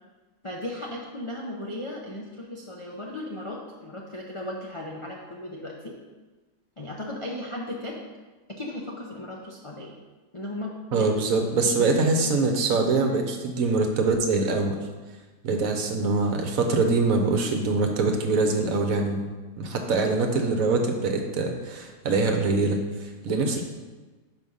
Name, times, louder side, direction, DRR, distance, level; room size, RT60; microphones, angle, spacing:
voice 1, 0.4-6.0 6.8-8.0 8.5-9.9 10.3-11.1 11.6-11.9 23.3-23.6, left 1 dB, 45° left, -3 dB, 0.4 m, -36 dB
voice 2, 10.9-14.8 15.4-19.2 19.6-23.6, right 3 dB, 65° right, 3 dB, 1.2 m, -24 dB
6.2 x 5.1 x 5.4 m, 1.3 s
omnidirectional pair, 1.7 m